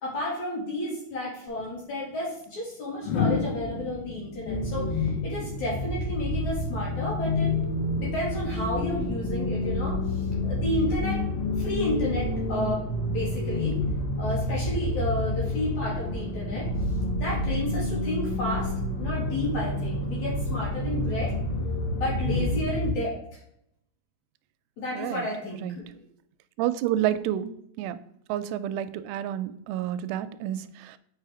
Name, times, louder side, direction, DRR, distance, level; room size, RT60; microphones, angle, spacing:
voice 1, 0.0-7.5 8.0-11.2 11.6-12.8 13.1-13.8 14.2-16.7 17.1-18.7 19.0-21.3 21.9-23.1 24.8-25.8, left 1 dB, 45° left, -4 dB, 3.2 m, -31 dB
sound 1, 1.5-1.7 3.0-6.1 7.6-7.9, left 5 dB, 90° left, 3.6 m, -31 dB
sound 2, 4.5-22.9, left 1 dB, 60° left, 3.1 m, -29 dB
voice 2, 24.9-25.2 25.6-25.8 26.6-28.0 28.3-31.0, right 11 dB, 85° right, 12 dB, 3.0 m, -29 dB
8.7 x 4.9 x 4.8 m, 0.72 s
omnidirectional pair, 5.5 m